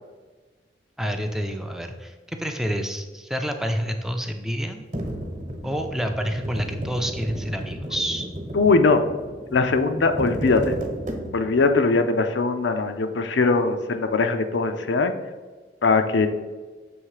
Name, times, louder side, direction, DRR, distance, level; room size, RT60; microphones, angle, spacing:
voice 1, 1.0-4.8 5.6-8.3, equal, ahead, 4 dB, 0.4 m, -28 dB
sound 1, 4.9-11.6, right 1 dB, 45° right, 1.0 m, -33 dB
voice 2, 8.5-9.0 9.5-10.8 11.3-15.1 15.8-16.3, left 3 dB, 85° left, 7 dB, 0.5 m, -20 dB
6.3 x 3.2 x 4.7 m, 1.3 s
head